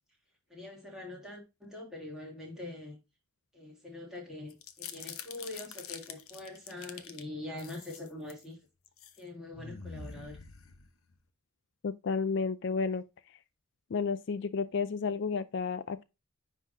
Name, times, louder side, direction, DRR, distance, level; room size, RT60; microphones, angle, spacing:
voice 1, 0.5-3.0 3.5-8.6 9.2-10.4, left 2 dB, 5° right, 2.5 m, -44 dB
sound 1, 4.5-7.2 7.6-8.4 8.9-9.2 9.5-11.2, left 7 dB, 80° left, 0.9 m, -45 dB
voice 2, 11.8-13.0 13.9-16.0, left 5 dB, 55° left, 0.4 m, -31 dB
10.0 x 3.7 x 2.6 m
head